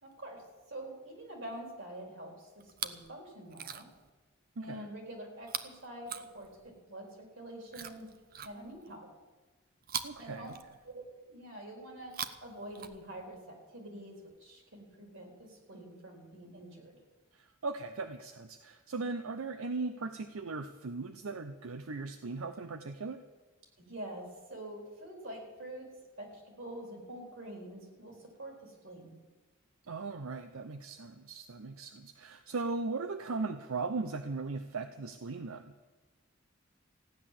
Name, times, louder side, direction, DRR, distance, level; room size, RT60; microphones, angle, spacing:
voice 1, 0.0-3.9 4.6-8.1 8.4-9.1 10.2-10.6 10.8-12.1 12.4-17.0 23.8-25.9 26.2-29.1, right 1 dB, 65° right, 2 dB, 3.9 m, -46 dB
Chewing mastication, 2.6-3.1 3.5-4.1 5.4-6.8 7.7-9.0 9.8-11.1 12.0-13.4 14.3-14.4, right 8 dB, 45° right, 0.7 m, -43 dB
voice 2, 4.6-4.9 10.0-10.5 17.3-23.2 29.9-35.7, right 3 dB, 85° right, 9 dB, 0.7 m, -38 dB
15.0 x 10.0 x 7.5 m, 1.2 s
head